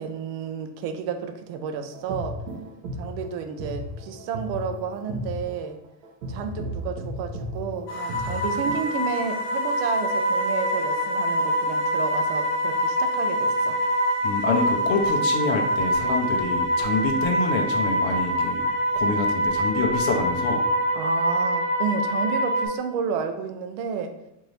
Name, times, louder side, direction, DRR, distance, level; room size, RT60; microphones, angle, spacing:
voice 1, 0.0-2.4 3.0-5.8 6.3-13.8 20.9-24.1, right 6 dB, 55° right, 6 dB, 0.6 m, -31 dB
sound 1, 1.9-8.9, equal, 85° right, 1.0 m, -35 dB
sound 2, 7.9-22.7, equal, 90° left, 1.0 m, -25 dB
voice 2, 14.2-18.6 18.9-20.6, left 3 dB, 45° left, 3 dB, 0.8 m, -26 dB
4.5 x 2.6 x 3.2 m, 0.86 s
cardioid pair, 155°, 48 cm